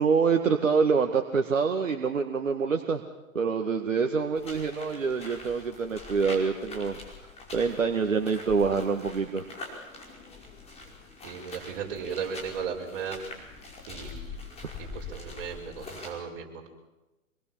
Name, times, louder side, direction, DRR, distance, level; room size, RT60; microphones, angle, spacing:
voice 1, 0.0-3.0 3.3-7.0 7.5-9.5, right 5 dB, 65° right, 5 dB, 2.0 m, -26 dB
sound 1, 4.4-16.1, left 3 dB, 15° left, 5.4 m, -44 dB
voice 2, 11.2-13.2 13.9-14.4 14.8-16.7, right 6 dB, 40° right, 0 dB, 6.0 m, -36 dB
26.5 x 21.0 x 7.6 m, 1.1 s
figure-of-eight pair, 120°, 41 cm